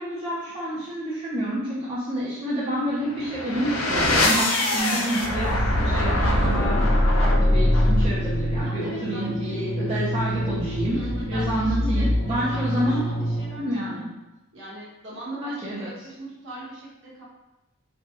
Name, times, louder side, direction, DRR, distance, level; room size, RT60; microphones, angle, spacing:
voice 1, 0.0-10.9 11.3-13.0 13.6-14.0 15.4-15.9, equal, 25° right, -10 dB, 0.5 m, -29 dB
sound 1, 3.0-13.7, left 1 dB, 70° left, 0.5 m, -23 dB
voice 2, 8.6-9.6 10.9-13.6 13.9-14.0 14.5-17.2, right 1 dB, 55° right, -7 dB, 1.1 m, -39 dB
3.2 x 2.2 x 2.8 m, 1.0 s
head